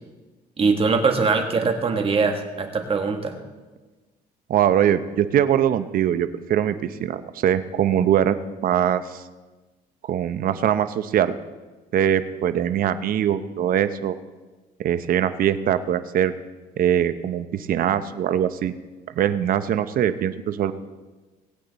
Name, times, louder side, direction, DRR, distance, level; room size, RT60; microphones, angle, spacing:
voice 1, 0.6-3.3, right 4 dB, 35° right, 5 dB, 1.6 m, -22 dB
voice 2, 4.5-8.4 8.6-9.2 10.1-11.3 11.9-14.2 14.8-16.3 16.8-18.7 19.2-20.7, right 10 dB, 60° right, 12 dB, 0.8 m, -22 dB
20.0 x 8.5 x 4.1 m, 1.3 s
cardioid pair, 110°, 17 cm